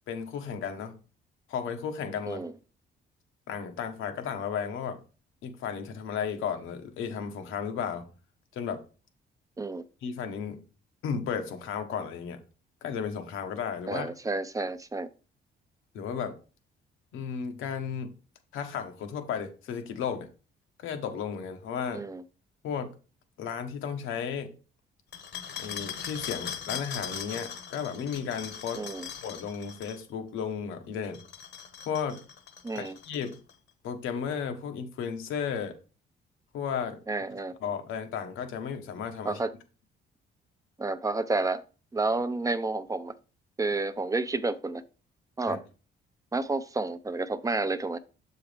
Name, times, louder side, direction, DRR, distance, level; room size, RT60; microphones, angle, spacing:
voice 1, 0.1-1.0 1.5-2.4 3.5-5.0 5.4-8.1 8.5-8.8 10.0-10.6 11.0-12.4 12.8-14.1 15.9-16.4 17.1-18.1 18.5-20.3 20.8-22.0 22.6-22.9 23.4-24.5 25.6-28.8 29.2-31.2 31.9-32.2 32.7-33.4 33.8-35.8 36.5-37.0 37.6-39.4 45.5-45.6, left 7 dB, 90° left, 1.1 m, -34 dB
voice 2, 13.9-15.1 21.9-22.2 28.7-29.1 32.6-33.0 37.1-37.5 39.2-39.5 40.8-41.6 41.9-43.2 43.6-44.8 45.4-45.6 46.3-48.0, right 3 dB, 15° right, 0.5 m, -30 dB
sound 1, 25.1-30.0 31.0-33.5, left 8 dB, 60° left, 1.1 m, -40 dB
7.0 x 4.6 x 3.4 m
cardioid pair, 90°, 20 cm